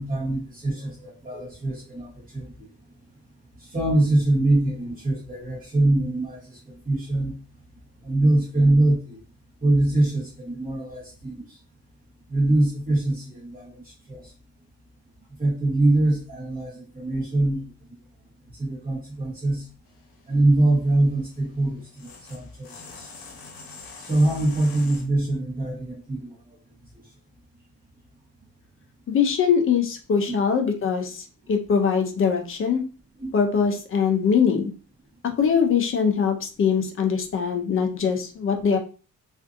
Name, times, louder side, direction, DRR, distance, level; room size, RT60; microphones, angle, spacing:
voice 1, 0.0-2.7 3.6-7.4 8.0-9.2 9.6-11.6 12.3-14.3 15.4-17.7 18.6-19.7 20.3-23.1 24.0-26.6 26.9-27.1 30.3-30.4 33.2-33.3, right 2 dB, 25° right, -5 dB, 1.0 m, -23 dB
sound 1, 19.9-25.1, left 4 dB, 75° left, 0.8 m, -45 dB
voice 2, 29.1-32.8 33.3-34.7 35.4-38.8, left 6 dB, 40° left, 4 dB, 0.4 m, -22 dB
2.5 x 2.4 x 2.4 m, 0.36 s
wide cardioid pair, 180°, 36 cm